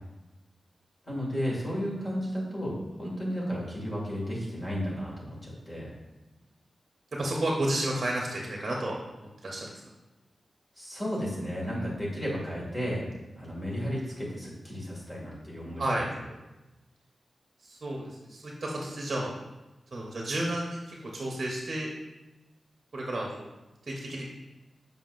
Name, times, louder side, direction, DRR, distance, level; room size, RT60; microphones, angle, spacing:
voice 1, 1.0-5.9 10.8-13.1 13.4-16.1, equal, 20° left, -5 dB, 2.1 m, -33 dB
voice 2, 7.1-9.7 15.8-16.0 17.6-19.3 19.9-21.9 22.9-23.5 23.8-24.2, right 1 dB, 45° right, -2 dB, 0.9 m, -32 dB
7.4 x 5.5 x 2.5 m, 1.1 s
wide cardioid pair, 130°, 0 cm